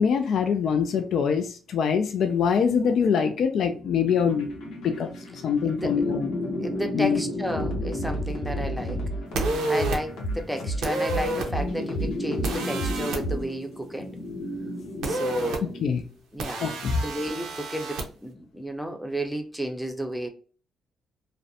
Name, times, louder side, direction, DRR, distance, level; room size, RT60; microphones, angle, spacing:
voice 1, 0.0-4.5 4.8-5.1 5.4-6.3 6.9-7.2 15.8-16.0 16.6-16.9, left 6 dB, 65° left, 0.3 m, -24 dB
sound 1, 3.6-16.0, left 1 dB, 40° left, 0.7 m, -34 dB
sound 2, 4.1-13.8, right 1 dB, 90° left, 0.7 m, -33 dB
voice 2, 5.7-6.0 6.6-9.0 9.7-14.1 15.0-15.7 16.3-20.3, equal, ahead, 0.5 m, -32 dB
sound 3, 9.3-10.0 10.8-11.5 12.4-13.2 15.0-15.6 16.4-18.0, right 2 dB, 85° right, 0.6 m, -29 dB
2.4 x 2.1 x 2.6 m
cardioid pair, 90°, 0 cm